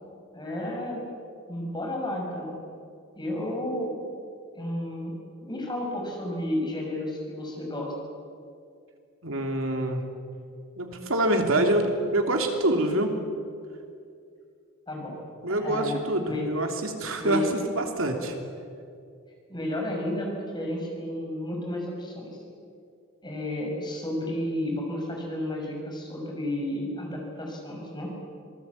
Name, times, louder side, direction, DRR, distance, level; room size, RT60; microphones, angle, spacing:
voice 1, 0.3-1.0 1.5-2.5 3.1-4.0 4.5-5.1 5.4-7.9 14.9-15.2 15.6-16.5 17.2-17.5 19.5-22.4 23.2-28.2, left 1 dB, 20° left, 0 dB, 6.0 m, -32 dB
voice 2, 9.2-10.0 10.8-13.1 15.4-17.4 17.7-18.4, right 1 dB, 65° right, 3 dB, 3.1 m, -26 dB
26.0 x 19.0 x 8.5 m, 2.4 s
head